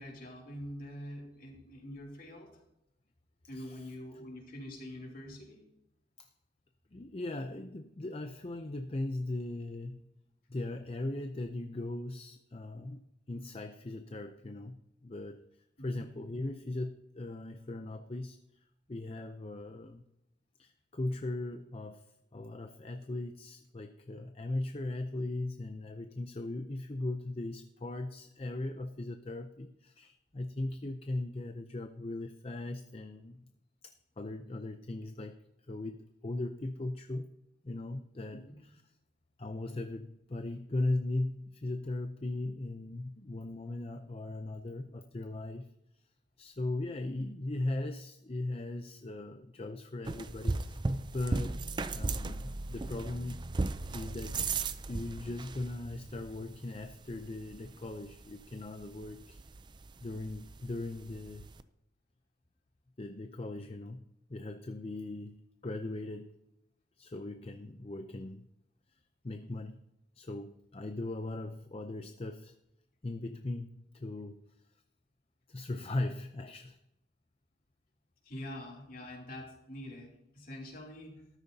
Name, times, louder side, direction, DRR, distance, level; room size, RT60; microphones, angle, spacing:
voice 1, 0.0-2.5 3.5-5.6 15.8-16.1 38.5-38.6 78.2-81.3, left 1 dB, 50° left, -1 dB, 3.0 m, -45 dB
voice 2, 3.5-3.9 6.2-6.3 6.9-10.1 10.5-13.0 13.3-15.4 15.8-20.0 20.6-22.1 22.3-33.4 33.8-35.4 35.7-37.3 37.6-38.8 39.4-45.7 46.4-50.8 51.1-51.6 51.9-53.4 53.8-54.5 54.9-59.4 60.0-61.5 63.0-64.0 64.3-66.3 67.0-68.4 69.2-69.8 70.2-72.5 73.0-74.4 75.5-76.8, left 2 dB, 30° left, 7 dB, 0.5 m, -38 dB
sound 1, 50.0-61.6, right 3 dB, 25° right, 0.4 m, -38 dB
13.5 x 13.0 x 2.8 m, 0.87 s
head